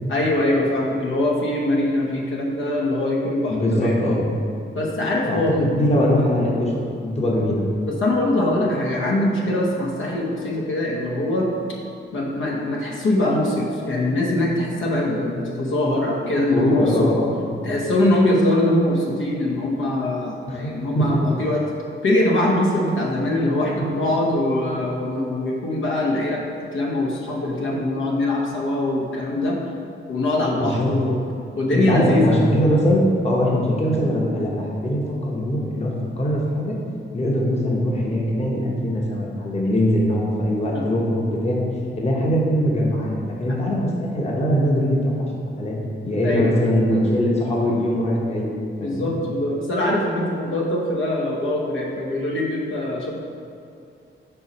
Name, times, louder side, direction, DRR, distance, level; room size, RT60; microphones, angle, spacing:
voice 1, 0.1-4.0 4.7-5.7 7.8-11.5 12.1-17.1 17.6-21.6 22.0-26.4 26.7-29.6 30.1-31.2 31.6-32.4 40.7-40.9 46.2-46.6 48.8-53.2, left 1 dB, 80° left, -3 dB, 0.9 m, -22 dB
voice 2, 3.5-4.2 5.3-7.6 16.5-17.5 20.5-21.2 23.8-23.9 29.3-29.5 30.6-30.9 31.7-36.8 37.1-45.3 45.6-45.8 46.0-48.5 48.8-49.1, equal, 30° left, -3 dB, 0.9 m, -22 dB
4.6 x 4.1 x 5.3 m, 2.4 s
wide cardioid pair, 110°, 20 cm